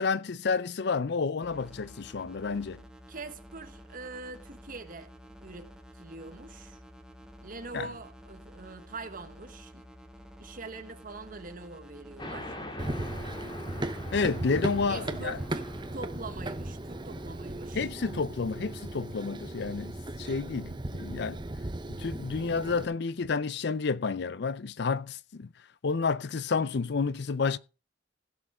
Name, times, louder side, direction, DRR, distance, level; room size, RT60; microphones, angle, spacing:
voice 1, 0.0-2.8 7.7-7.9 14.1-15.4 17.7-21.4 21.9-25.5 25.8-27.6, left 4 dB, 60° left, 0.5 m, -30 dB
sound 1, 1.4-15.9, equal, 5° right, 1.3 m, -51 dB
voice 2, 3.1-5.1 5.4-5.7 5.9-6.8 7.4-9.9 10.4-12.6 14.9-17.8, right 3 dB, 45° right, 1.3 m, -43 dB
sound 2, 12.2-19.4, left 1 dB, 25° left, 1.9 m, -45 dB
Run, 12.8-22.8, right 1 dB, 25° right, 0.8 m, -37 dB
16.0 x 6.5 x 4.9 m
head